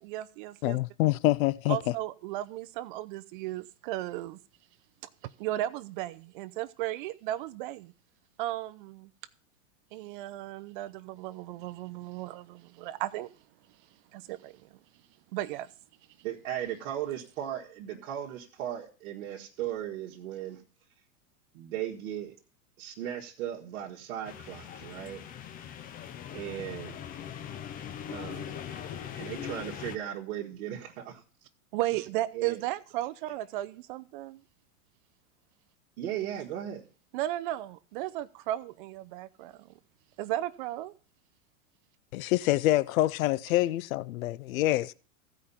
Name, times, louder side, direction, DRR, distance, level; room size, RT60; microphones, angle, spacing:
voice 1, 0.0-0.8 1.7-4.4 5.2-7.9 8.4-9.1 9.9-13.3 14.1-14.5 15.3-15.7 31.7-34.4 37.1-39.7 40.2-40.9, right 15 dB, 40° right, 0.4 m, -35 dB
voice 2, 0.6-1.9 42.1-44.9, left 16 dB, 70° left, 0.6 m, -26 dB
voice 3, 16.2-20.6 21.5-22.3 22.8-25.2 26.3-27.0 28.1-28.6 29.2-31.2 32.3-32.6 36.0-36.8, right 11 dB, 60° right, 1.6 m, -37 dB
sound 1, 24.2-30.0, left 9 dB, 20° left, 0.6 m, -41 dB
15.0 x 5.1 x 5.6 m
hypercardioid pair, 130°, 43 cm